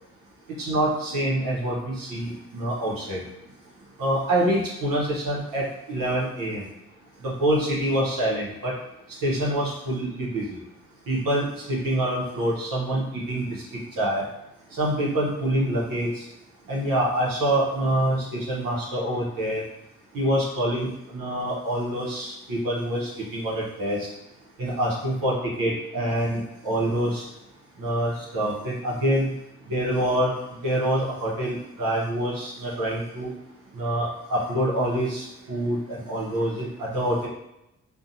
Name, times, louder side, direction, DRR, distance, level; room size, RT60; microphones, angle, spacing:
voice 1, 0.6-3.2 4.0-6.6 7.2-8.7 9.2-10.4 11.1-13.4 14.0-14.2 14.7-16.2 16.7-19.6 20.1-24.0 24.6-27.2 27.8-29.3 29.7-30.3 30.6-33.3 33.7-37.3, right 1 dB, 75° right, -5 dB, 0.8 m, -26 dB
2.7 x 2.1 x 2.6 m, 0.88 s
supercardioid pair, 45°, 34 cm